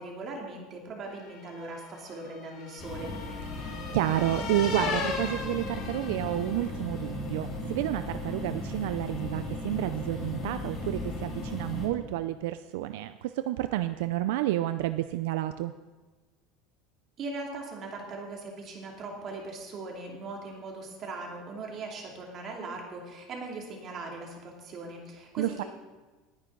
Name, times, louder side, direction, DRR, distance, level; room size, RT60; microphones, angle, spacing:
voice 1, 0.0-3.1 17.2-25.6, right 3 dB, 30° right, 0 dB, 2.6 m, -40 dB
sound 1, 1.3-6.7, left 5 dB, 50° left, 2.5 m, -37 dB
sound 2, 2.8-11.9, left 1 dB, 25° left, 3.9 m, -36 dB
voice 2, 3.6-15.7 25.4-25.6, right 14 dB, 80° right, 11 dB, 0.4 m, -30 dB
20.0 x 9.9 x 3.9 m, 1.3 s
cardioid pair, 170°, 0 cm